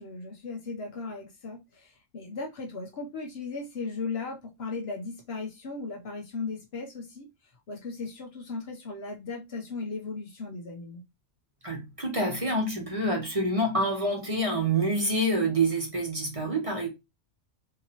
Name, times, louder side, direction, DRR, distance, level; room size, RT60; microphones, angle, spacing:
voice 1, 0.0-7.3 7.7-11.0, left 4 dB, 60° left, 1.0 m, -37 dB
voice 2, 11.6-16.9, right 1 dB, 30° right, 1.0 m, -27 dB
4.0 x 2.8 x 2.8 m
omnidirectional pair, 1.3 m